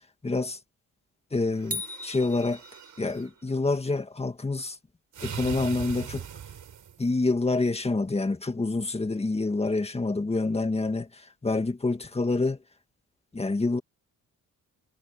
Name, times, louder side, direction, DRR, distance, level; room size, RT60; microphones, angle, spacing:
voice 1, 0.2-0.6 1.3-2.6 3.0-4.8 5.2-6.2 7.0-12.6 13.3-13.8, left 3 dB, 20° left, 1.9 m, -27 dB
sound 1, 1.5-3.3 5.1-7.1, right 8 dB, 65° right, 5.5 m, -40 dB
sound 2, 1.7-3.3, left 1 dB, 25° right, 2.7 m, -38 dB
cardioid pair, 105°, 32 cm